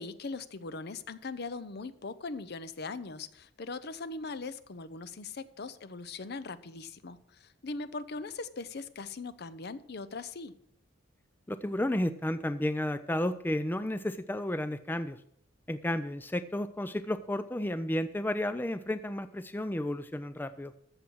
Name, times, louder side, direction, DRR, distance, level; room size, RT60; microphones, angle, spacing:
voice 1, 0.0-10.5, left 3 dB, 55° left, 14 dB, 0.7 m, -40 dB
voice 2, 11.5-15.2 15.7-20.7, left 1 dB, 10° left, 12 dB, 0.4 m, -32 dB
13.5 x 7.1 x 6.2 m, 0.72 s
head